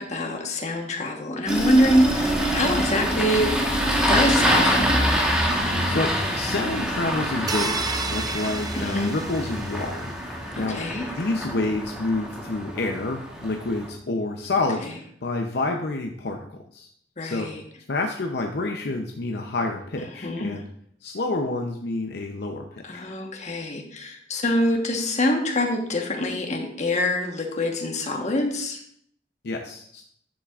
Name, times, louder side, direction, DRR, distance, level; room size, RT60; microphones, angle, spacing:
voice 1, 0.0-3.5 4.1-5.1 8.8-9.1 10.6-11.0 14.8-14.9 17.2-17.6 20.1-20.5 22.8-28.8, left 1 dB, 40° left, 2 dB, 1.3 m, -25 dB
Engine starting, 1.5-13.9, equal, 5° right, 1.3 m, -25 dB
voice 2, 5.9-10.8 11.1-16.9 17.2-17.5 17.9-20.7 21.0-23.1 29.4-30.0, left 2 dB, 65° left, 2 dB, 0.7 m, -28 dB
sound 1, 7.5-10.0, right 4 dB, 20° right, 0.5 m, -32 dB
10.0 x 7.2 x 2.5 m, 0.66 s
head